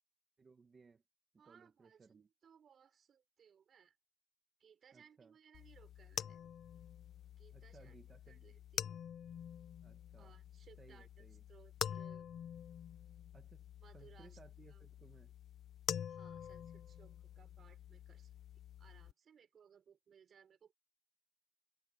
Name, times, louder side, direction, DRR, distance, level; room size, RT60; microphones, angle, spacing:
voice 1, 0.4-1.0 1.4-2.3 4.9-5.4 7.5-8.4 9.8-10.3 10.8-11.4 13.3-13.7 13.9-15.3, right 4 dB, 35° right, 2.1 m, -62 dB
voice 2, 1.4-4.0 4.6-6.4 7.4-8.0 8.3-8.9 10.2-12.3 13.8-14.4 14.7-14.8 16.1-18.3 18.8-20.7, right 7 dB, 65° right, 4.7 m, -65 dB
sound 1, 5.5-19.1, left 9 dB, 80° left, 0.9 m, -47 dB
wide cardioid pair, 135°, 0 cm